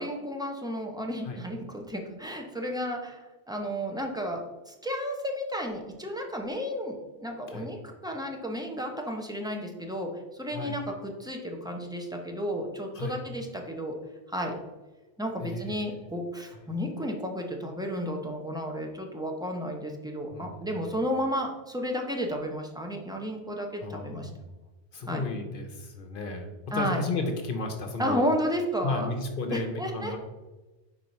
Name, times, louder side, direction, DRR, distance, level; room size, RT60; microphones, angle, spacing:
voice 1, 0.0-14.0 14.3-14.5 15.2-24.3 25.1-25.3 26.7-27.0 28.0-29.1 29.5-30.1, equal, 5° right, 2 dB, 0.6 m, -32 dB
voice 2, 20.3-20.7 23.8-24.4 24.9-28.2 28.8-30.2, left 2 dB, 55° left, 4 dB, 0.9 m, -33 dB
4.5 x 4.3 x 5.3 m, 1.1 s
omnidirectional pair, 1.1 m